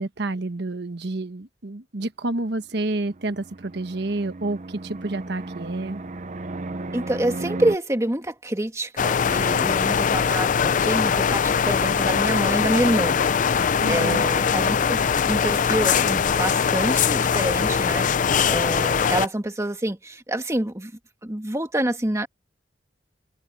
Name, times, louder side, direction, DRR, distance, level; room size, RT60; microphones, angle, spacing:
voice 1, 0.0-6.0 13.8-14.2, right 2 dB, 65° right, 1.1 m, -29 dB
Fixed-wing aircraft airplane, 2.8-7.8, right 2 dB, 40° right, 0.8 m, -35 dB
voice 2, 6.9-13.2 13.9-15.0 15.2-20.9 21.2-22.3, right 1 dB, 15° right, 2.0 m, -27 dB
sound 1, 9.0-19.3, left 6 dB, 45° left, 0.4 m, -21 dB
head